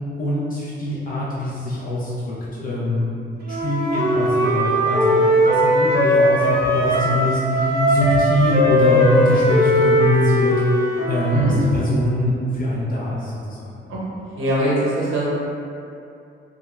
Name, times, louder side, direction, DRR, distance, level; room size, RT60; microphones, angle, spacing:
voice 1, 0.2-3.1 3.5-13.9, left 1 dB, 40° left, -7 dB, 0.4 m, -23 dB
Wind instrument woodwind instrument, 3.4-7.3 7.5-11.5, equal, 50° right, 0.5 m, -19 dB
voice 2, 7.6-8.0 11.3-11.6 13.9-14.0 14.4-15.2, right 1 dB, 80° right, -7 dB, 0.8 m, -22 dB
2.3 x 2.0 x 3.0 m, 2.6 s
cardioid pair, 140°, 21 cm